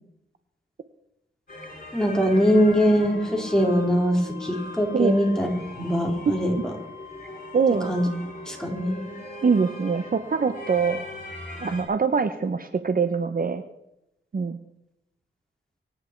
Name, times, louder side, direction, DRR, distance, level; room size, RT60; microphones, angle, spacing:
sound 1, 1.5-11.8, left 1 dB, 45° left, 6.6 m, -40 dB
voice 1, 1.9-5.5 5.8-6.7 7.9-8.1 8.5-9.0, equal, 5° left, 1 dB, 3.9 m, -22 dB
Wind instrument woodwind instrument, 2.5-11.1, left 7 dB, 15° right, 7.5 m, -47 dB
voice 2, 7.5-7.9 9.4-11.0 11.6-13.6 14.3-14.6, right 5 dB, 45° right, 10 dB, 0.8 m, -23 dB
24.5 x 9.5 x 4.5 m, 0.86 s
cardioid pair, 80°, 21 cm